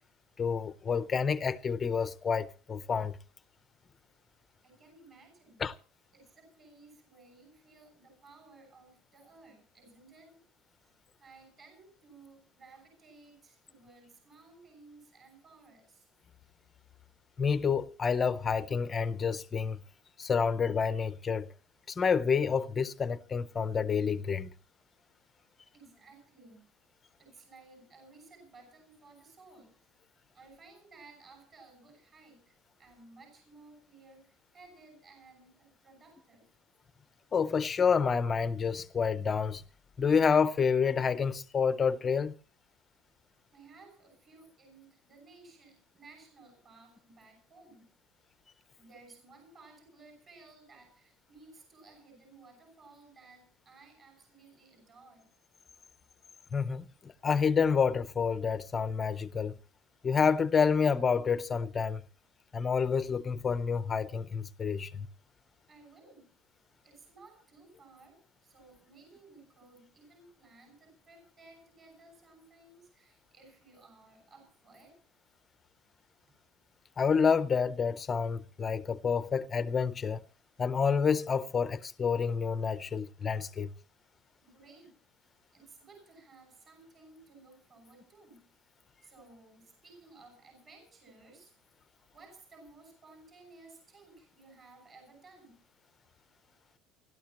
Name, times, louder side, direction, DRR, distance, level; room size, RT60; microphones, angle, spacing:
voice 1, 0.4-3.2 5.6-5.7 17.4-19.8 20.2-21.5 21.9-24.5 37.3-39.6 40.0-42.3 56.5-59.6 60.0-62.0 62.5-65.1 77.0-80.2 80.6-83.7, left 6 dB, 20° left, 0.7 m, -28 dB
voice 2, 4.6-5.6 6.1-10.4 10.8-10.9 11.2-16.1 25.7-26.6 27.2-29.9 30.3-36.5 43.5-47.9 48.8-55.3 65.7-66.3 66.8-75.0 84.4-85.0 85.5-88.4 89.0-91.5 92.1-95.6, right 3 dB, 25° right, 6.4 m, -57 dB
29.5 x 12.5 x 3.0 m
cardioid pair, 170°, 0 cm